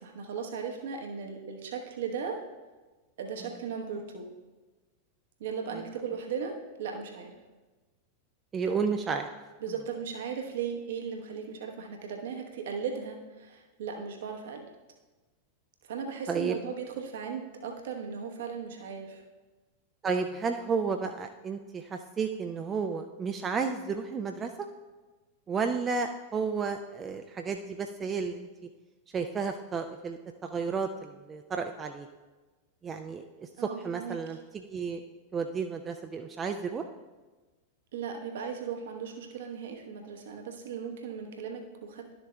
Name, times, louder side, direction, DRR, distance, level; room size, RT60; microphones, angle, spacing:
voice 1, 0.0-2.4 3.2-4.3 5.4-7.4 8.7-9.0 9.6-14.6 15.8-19.2 33.6-34.2 37.9-42.1, right 6 dB, 60° right, 3 dB, 1.0 m, -37 dB
voice 2, 8.5-9.3 16.3-16.6 20.0-24.7 25.5-28.7 29.1-32.1 32.8-35.0 35.3-36.8, right 5 dB, 20° right, 5 dB, 0.4 m, -32 dB
12.0 x 6.9 x 2.2 m, 1.2 s
figure-of-eight pair, 90°, 0 cm